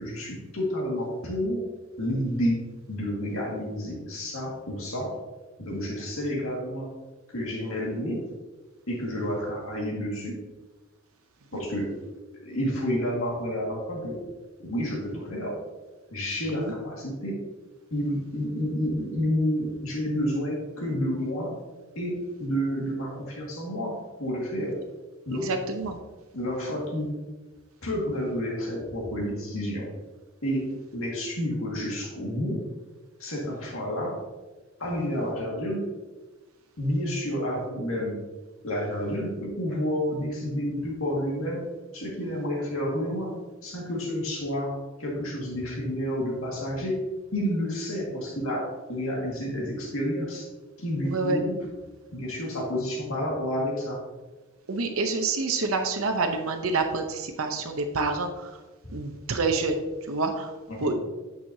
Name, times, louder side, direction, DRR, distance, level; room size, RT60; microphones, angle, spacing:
voice 1, 0.0-1.7 2.0-5.2 5.6-6.9 7.3-8.3 8.9-10.4 11.5-11.9 12.4-14.2 14.6-15.6 16.1-17.4 17.9-21.6 22.0-24.8 25.3-25.5 26.3-27.1 27.8-29.9 30.4-32.6 33.2-34.2 34.8-35.9 36.8-38.2 38.6-41.6 41.9-43.3 43.6-50.5 50.8-51.6 52.1-54.0 60.7-60.9, equal, 70° left, -3 dB, 1.9 m, -30 dB
voice 2, 25.4-26.0 51.0-51.4 54.7-58.5 58.9-59.8 60.1-60.5 60.8-60.9, right 3 dB, 70° right, 5 dB, 0.7 m, -27 dB
9.0 x 6.3 x 2.7 m, 1.2 s
head